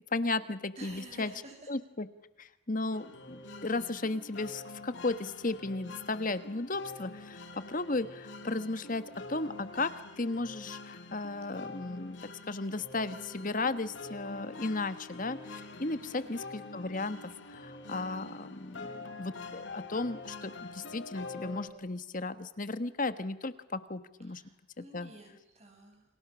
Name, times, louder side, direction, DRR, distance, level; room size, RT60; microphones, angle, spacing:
voice 1, 0.1-1.3 1.7-2.1 2.4-9.0 9.3-9.9 10.2-24.4 24.8-25.1, left 3 dB, 40° left, 12 dB, 1.4 m, -35 dB
voice 2, 0.8-1.7 15.9-16.4 24.2-26.0, right 2 dB, 35° right, 2 dB, 7.3 m, -51 dB
sound 1, 2.9-21.7, left 3 dB, 65° left, 3.1 m, -46 dB
30.0 x 26.5 x 6.3 m, 1.0 s
head